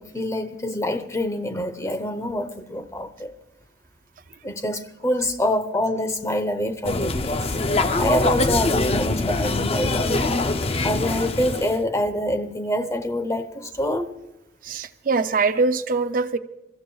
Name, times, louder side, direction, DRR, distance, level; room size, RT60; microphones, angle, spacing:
voice 1, 0.0-3.3 4.4-10.5 10.8-14.1, left 1 dB, 15° left, 0.9 m, -26 dB
sound 1, 6.9-11.8, left 2 dB, 35° left, 0.5 m, -23 dB
voice 2, 14.6-16.4, right 4 dB, 50° right, 0.5 m, -22 dB
28.0 x 14.0 x 2.3 m
head